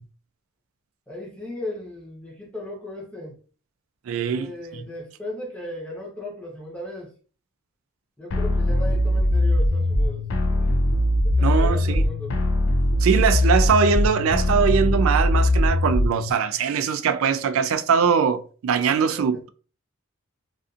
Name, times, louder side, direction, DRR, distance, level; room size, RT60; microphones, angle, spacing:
voice 1, 1.1-3.4 4.3-7.1 8.2-10.8 11.2-12.4 18.9-19.4, left 1 dB, 5° left, 0.8 m, -37 dB
voice 2, 4.1-4.5 4.7-4.8 11.4-12.0 13.0-19.5, right 6 dB, 80° right, 0.3 m, -22 dB
sound 1, 8.3-16.3, left 1 dB, 65° left, 0.4 m, -21 dB
2.5 x 2.5 x 2.4 m
head